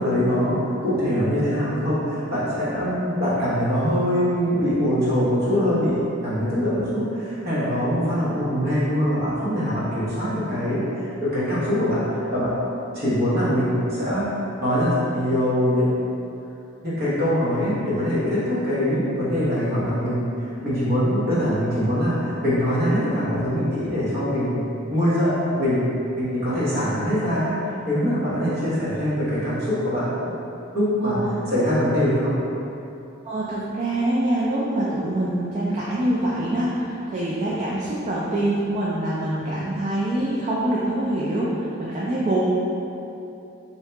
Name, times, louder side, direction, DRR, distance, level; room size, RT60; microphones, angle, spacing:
voice 1, 0.0-12.5 12.9-14.2 14.6-16.1 16.8-24.6 24.9-30.3 30.7-31.2 31.5-32.3, equal, 50° right, -10 dB, 1.1 m, -23 dB
voice 2, 33.2-42.5, right 1 dB, 35° right, -7 dB, 0.3 m, -25 dB
2.7 x 2.7 x 3.3 m, 2.8 s
head